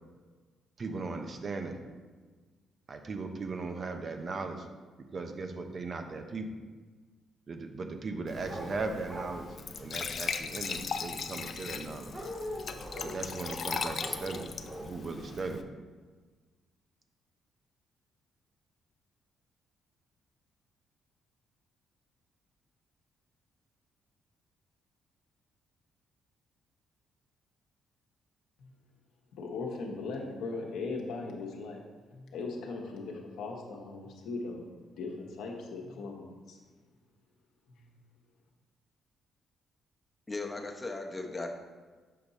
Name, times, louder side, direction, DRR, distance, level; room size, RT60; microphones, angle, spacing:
voice 1, 0.8-1.8 2.9-4.7 5.1-6.6 7.5-9.5 9.8-12.1 13.0-14.5 14.8-15.7, right 3 dB, 45° right, 6 dB, 0.7 m, -38 dB
Glass / Trickle dribble / Fill (with liquid), 8.3-15.6, left 5 dB, 50° left, 0.4 m, -38 dB
sound 1, 8.5-8.7 9.0-9.4 12.1-13.6 13.9-14.8 15.2-15.4, equal, 30° right, 1.5 m, -41 dB
voice 2, 29.3-31.8 32.1-34.7 35.0-36.6, left 3 dB, 80° left, 0 dB, 1.1 m, -39 dB
voice 3, 40.3-41.5, left 3 dB, 20° left, 3 dB, 0.9 m, -37 dB
6.6 x 5.2 x 4.1 m, 1.4 s
cardioid pair, 90°, 0 cm